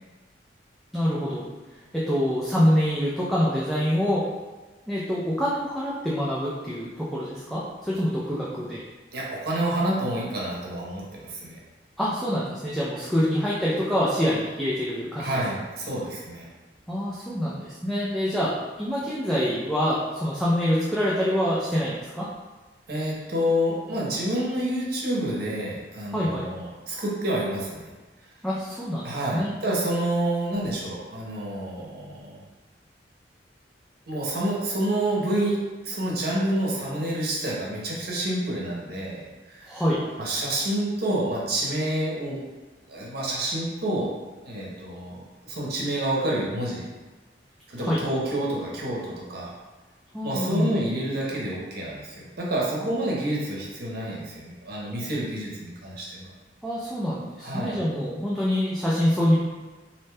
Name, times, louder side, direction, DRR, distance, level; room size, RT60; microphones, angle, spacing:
voice 1, 0.9-1.4 1.9-4.2 4.9-8.8 12.0-15.4 16.9-22.3 26.1-26.4 28.4-29.1 29.3-29.5 39.7-40.0 47.8-48.0 50.1-50.7 56.6-59.4, equal, ahead, -8 dB, 0.3 m, -25 dB
voice 2, 9.1-11.6 15.2-16.5 22.9-27.9 29.0-32.4 34.1-39.8 40.2-42.4 42.9-44.1 44.4-46.8 47.7-49.5 50.2-56.3 57.4-57.8, right 1 dB, 60° right, -4 dB, 0.8 m, -28 dB
2.6 x 2.1 x 3.2 m, 1.2 s
head